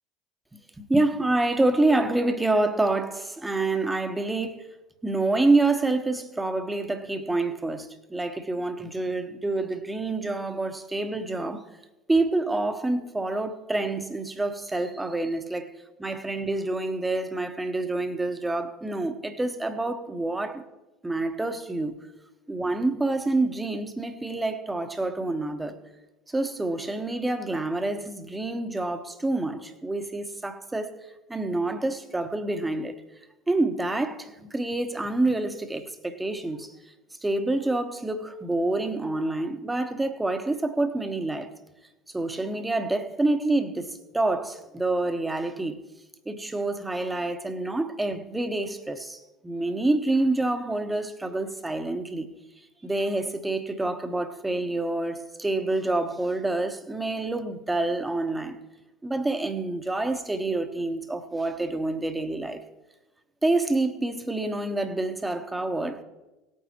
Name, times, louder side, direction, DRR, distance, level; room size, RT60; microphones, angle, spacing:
voice 1, 0.5-4.7 5.0-11.7 12.1-15.7 16.0-20.6 21.0-21.9 22.5-25.8 26.3-30.9 31.3-33.0 33.5-36.7 37.2-41.5 42.1-45.8 46.2-52.3 52.8-58.6 59.0-62.6 63.4-66.0, right 2 dB, 10° right, 1.2 m, -27 dB
18.5 x 9.4 x 3.0 m
hypercardioid pair, 70°, 0 cm